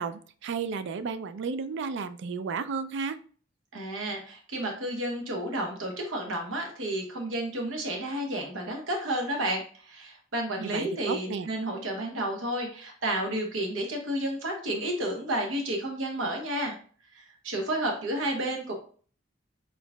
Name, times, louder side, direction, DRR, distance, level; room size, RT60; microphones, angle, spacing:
voice 1, 0.0-3.2 10.6-11.5, right 5 dB, 65° right, 12 dB, 0.4 m, -33 dB
voice 2, 3.7-16.7 17.1-18.7, right 1 dB, 90° right, 2 dB, 1.0 m, -31 dB
4.5 x 3.9 x 2.2 m, 0.43 s
head